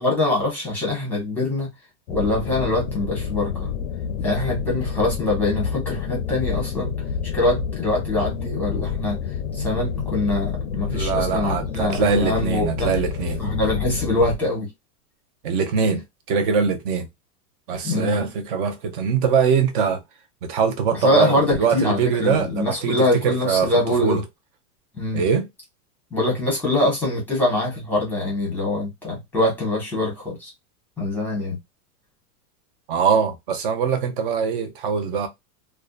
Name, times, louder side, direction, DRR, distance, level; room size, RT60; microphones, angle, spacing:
voice 1, 0.0-1.7 2.1-3.7 4.2-6.9 7.3-9.2 9.5-12.9 13.4-14.7 17.8-18.2 21.0-24.2 24.9-25.2 26.1-30.5 31.0-31.6, left 2 dB, 5° left, 0.9 m, -23 dB
sound 1, 2.1-14.4, left 7 dB, 60° left, 0.5 m, -29 dB
voice 2, 10.8-13.4 15.4-16.0 16.3-17.1 17.7-20.0 20.4-23.7 24.0-24.2 25.1-25.5 32.9-35.3, right 6 dB, 35° right, 0.5 m, -22 dB
2.6 x 2.1 x 2.3 m
supercardioid pair, 160°, 45 cm